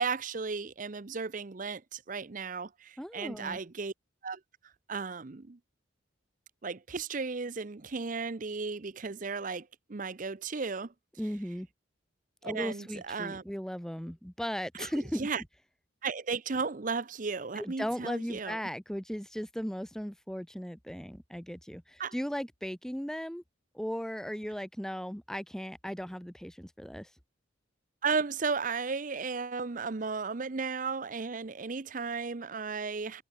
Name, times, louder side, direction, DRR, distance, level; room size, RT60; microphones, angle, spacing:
voice 1, 0.0-3.9 4.2-4.4 4.9-5.6 6.6-10.9 12.4-13.4 14.7-14.9 15.2-15.4 16.0-18.6 22.0-22.1 28.0-33.2, right 4 dB, 40° right, 0.6 m, -34 dB
voice 2, 3.0-3.6 11.2-11.7 12.4-15.3 17.5-23.4 23.7-27.1, equal, 5° left, 1.0 m, -37 dB
head